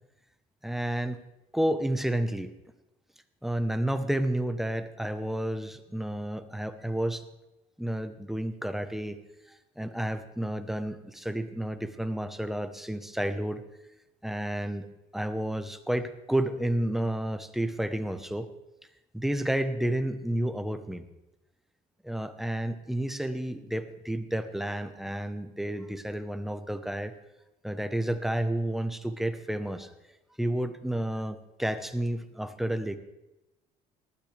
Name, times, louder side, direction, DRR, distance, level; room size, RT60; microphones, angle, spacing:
voice 1, 0.6-1.2 1.5-2.5 3.4-7.2 7.8-9.2 9.5-13.6 14.2-14.9 15.1-18.5 19.1-21.0 22.0-27.1 27.6-29.9 30.4-33.0, right 1 dB, ahead, 9 dB, 1.0 m, -31 dB
19.0 x 12.5 x 3.4 m, 0.97 s
cardioid pair, 110°, 17 cm